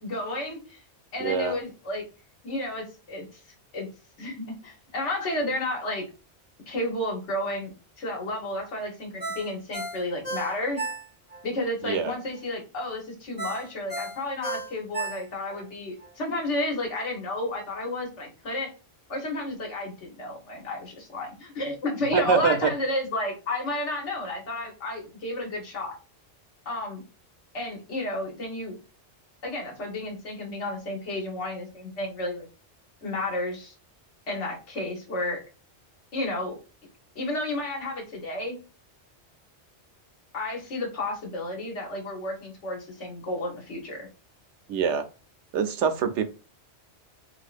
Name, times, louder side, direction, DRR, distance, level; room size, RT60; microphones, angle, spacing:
voice 1, 0.0-0.8 1.1-2.0 2.4-3.2 3.7-3.9 4.2-6.0 6.7-7.7 8.0-10.9 11.4-18.7 19.1-26.0 26.6-27.0 27.5-28.8 29.4-32.5 33.0-33.7 34.3-35.4 36.1-36.6 37.1-38.6 40.3-44.1, left 1 dB, 85° left, 0 dB, 1.5 m, -32 dB
voice 2, 1.2-1.6 11.8-12.1 22.1-22.7 44.7-45.0 45.5-46.2, right 6 dB, 85° right, 8 dB, 0.9 m, -24 dB
Ringtone, 9.2-11.4 11.8-11.9 13.4-15.6 16.0-16.1, right 2 dB, 10° right, 0.8 m, -34 dB
3.4 x 2.9 x 2.4 m, 0.34 s
omnidirectional pair, 1.2 m